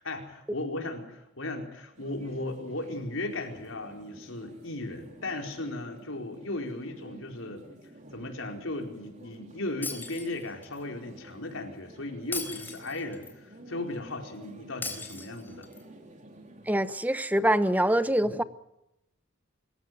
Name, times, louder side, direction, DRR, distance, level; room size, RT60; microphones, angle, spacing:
voice 1, 0.0-7.7 8.1-15.7 18.2-18.4, left 2 dB, 80° left, 2 dB, 4.6 m, -36 dB
sound 1, 2.0-16.8, right 1 dB, 40° right, 3.8 m, -52 dB
Shatter, 9.8-10.8 12.3-13.3 14.8-15.8, left 3 dB, 10° left, 4.0 m, -38 dB
voice 2, 16.7-18.4, right 1 dB, 10° right, 12 dB, 0.9 m, -24 dB
26.0 x 15.0 x 9.4 m, 0.86 s
head